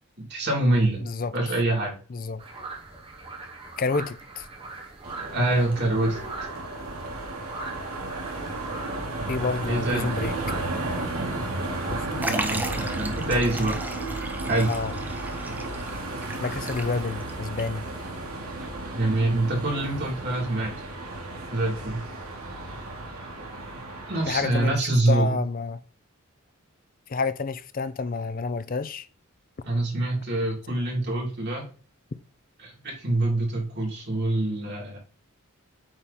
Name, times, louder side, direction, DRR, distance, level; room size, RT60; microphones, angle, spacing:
voice 1, 0.2-1.1 1.3-1.9 5.3-6.2 9.7-10.1 12.2-13.8 14.5-14.7 18.9-20.7 21.5-22.0 24.1-25.4 29.6-31.6 32.6-35.0, right 2 dB, 50° right, 2.9 m, -25 dB
voice 2, 1.0-1.3 2.1-2.4 3.8-4.5 9.3-10.3 11.9-12.2 14.7-15.0 16.4-17.9 24.3-24.8 25.1-25.8 27.1-29.1, left 4 dB, 40° left, 0.5 m, -29 dB
sound 1, 2.4-13.1, right 3 dB, 25° right, 1.3 m, -42 dB
sound 2, 5.0-24.7, right 2 dB, 80° right, 2.1 m, -33 dB
Liquid, 12.2-17.3 17.6-17.7 18.6-18.7, right 1 dB, 10° right, 0.6 m, -35 dB
8.7 x 3.6 x 4.2 m
head